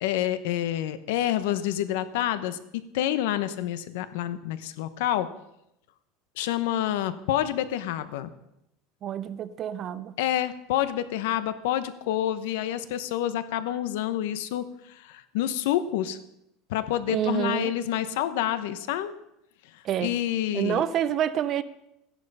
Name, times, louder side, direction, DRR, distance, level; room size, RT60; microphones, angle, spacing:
voice 1, 0.0-5.3 6.4-8.3 10.2-16.2 16.7-19.1 20.0-20.8, left 12 dB, 70° left, 13 dB, 1.0 m, -28 dB
voice 2, 9.0-10.1 17.1-17.7 19.8-20.1 20.5-21.6, right 10 dB, 30° right, 15 dB, 0.5 m, -28 dB
14.0 x 10.5 x 5.5 m, 0.82 s
cardioid pair, 180°, 0 cm